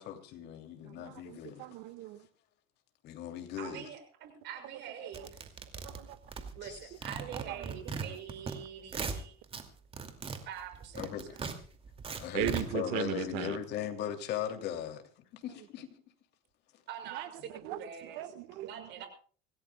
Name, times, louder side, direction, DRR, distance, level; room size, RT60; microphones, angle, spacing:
voice 1, 0.0-1.7 3.0-3.8 6.6-6.8 11.0-11.5 12.2-15.0 15.3-15.9, left 10 dB, 55° left, 2.9 m, -38 dB
voice 2, 0.8-2.3 5.1-5.3 5.8-6.2 7.2-7.8 12.3-13.6 17.1-17.3 17.6-18.7, right 14 dB, 80° right, 1.6 m, -38 dB
voice 3, 3.6-5.5 6.5-9.3 10.4-11.4 16.9-18.2 18.6-19.1, right 9 dB, 60° right, 6.4 m, -45 dB
sound 1, 5.1-6.8 7.0-8.6 8.8-9.6 9.9-12.6, right 5 dB, 30° right, 2.4 m, -38 dB
25.5 x 17.0 x 2.3 m
cardioid pair, 130°, 20 cm